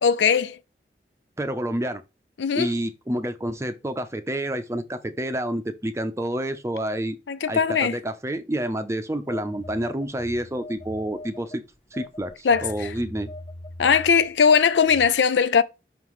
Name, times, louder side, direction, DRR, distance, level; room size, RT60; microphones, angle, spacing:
voice 1, 0.0-0.6 2.4-2.7 7.3-8.0 12.4-12.9 13.8-15.6, left 6 dB, 85° left, 0.5 m, -20 dB
voice 2, 1.4-2.0 2.6-7.2 7.5-11.6 11.9-13.3, right 1 dB, 15° right, 0.6 m, -28 dB
Telephone, 9.3-11.6 11.9-15.1, left 1 dB, 25° left, 1.4 m, -41 dB
5.9 x 5.4 x 3.1 m
head